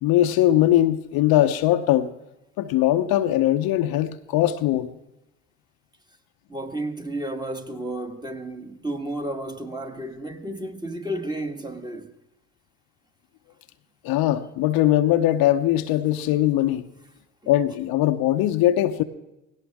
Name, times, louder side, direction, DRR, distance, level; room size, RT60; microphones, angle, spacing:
voice 1, 0.0-2.1 2.6-4.9 14.0-16.8 17.5-19.0, left 13 dB, 65° left, 0.9 m, -20 dB
voice 2, 6.5-12.1, right 1 dB, 10° right, 1.6 m, -32 dB
18.0 x 17.0 x 3.5 m
hypercardioid pair, 60°, 40 cm